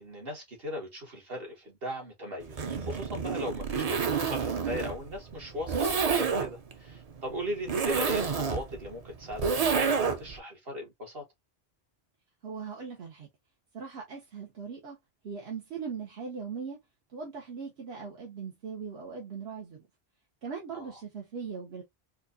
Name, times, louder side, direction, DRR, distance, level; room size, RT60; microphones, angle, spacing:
voice 1, 0.0-11.2 20.7-20.9, equal, 65° right, 1.9 m, -38 dB
Zipper (clothing), 2.4-10.4, right 5 dB, 45° right, 0.6 m, -29 dB
voice 2, 12.4-13.3 13.7-15.0 15.2-16.8 17.1-19.8 20.4-21.8, right 6 dB, 80° right, 1.2 m, -39 dB
4.4 x 2.4 x 2.6 m
omnidirectional pair, 1.0 m